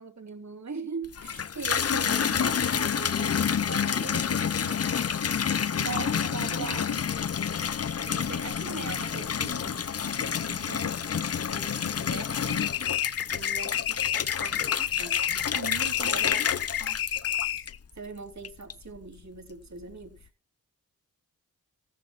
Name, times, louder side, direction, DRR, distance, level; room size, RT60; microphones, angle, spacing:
voice 1, 0.0-4.8 5.8-6.9 8.1-11.1 11.5-12.6 13.3-15.3 16.0-16.5 17.9-20.3, right 4 dB, 50° right, 3.3 m, -41 dB
Water tap faucet / Bathtub (filling or washing), 1.0-18.0 18.4-19.0, left 7 dB, 45° left, 0.7 m, -29 dB
voice 2, 5.8-7.0 15.5-16.2 16.8-17.3, right 7 dB, 75° right, 1.6 m, -42 dB
sound 1, 12.5-17.8, left 10 dB, 90° left, 0.9 m, -30 dB
14.5 x 14.0 x 2.6 m
cardioid pair, 55°, 35 cm